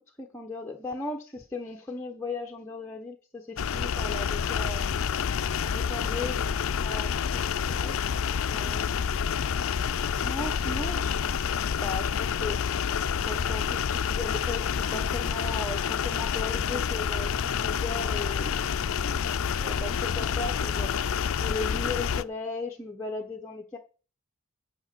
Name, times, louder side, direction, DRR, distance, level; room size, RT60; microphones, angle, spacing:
voice 1, 0.2-4.9 5.6-7.9 8.5-9.4 10.2-11.2 11.6-12.6 13.2-17.3 17.6-18.6 18.9-20.9 21.4-23.8, left 3 dB, 10° left, 0 dB, 1.0 m, -37 dB
sound 1, 3.6-22.2, left 7 dB, 65° left, 0.4 m, -28 dB
9.4 x 5.1 x 7.7 m, 0.37 s
head